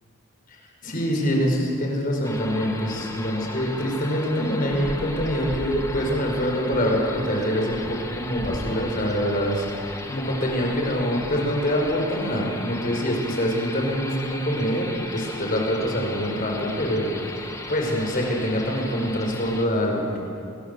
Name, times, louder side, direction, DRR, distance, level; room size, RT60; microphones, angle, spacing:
voice 1, 0.8-20.2, equal, 45° left, 0 dB, 5.6 m, -25 dB
sound 1, 2.2-19.6, left 2 dB, 15° left, 1.9 m, -36 dB
29.0 x 23.5 x 7.1 m, 2.5 s
head